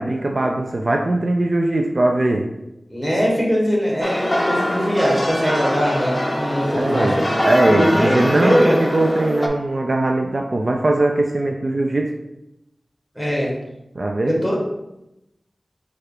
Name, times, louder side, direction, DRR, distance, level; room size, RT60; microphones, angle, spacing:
voice 1, 0.0-2.5 6.7-12.1 14.0-14.4, right 2 dB, 55° right, 2 dB, 0.4 m, -20 dB
voice 2, 2.9-7.3 7.6-8.9 13.1-13.6 14.2-14.6, equal, 5° right, -3 dB, 1.5 m, -21 dB
sound 1, 4.0-9.5, left 1 dB, 20° left, 0.6 m, -23 dB
4.6 x 2.4 x 4.8 m, 0.89 s
wide cardioid pair, 75°, 0 cm